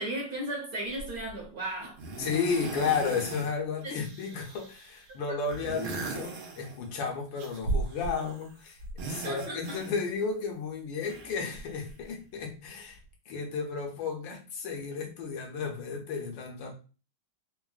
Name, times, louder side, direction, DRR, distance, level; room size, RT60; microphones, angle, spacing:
voice 1, 0.0-2.0 3.8-4.0 9.2-9.8, right 1 dB, 55° right, -2 dB, 1.2 m, -35 dB
sound 1, 1.0-1.3 2.0-3.5 3.8-5.0 5.4-7.0 7.4-8.5 8.8-10.2 11.0-12.1 13.0-13.1, right 3 dB, 80° right, 1.5 m, -37 dB
voice 2, 2.2-8.8 9.1-13.0 13.3-16.7, left 5 dB, 75° left, 0 dB, 1.4 m, -33 dB
3.8 x 2.0 x 2.3 m, 0.35 s
omnidirectional pair, 2.2 m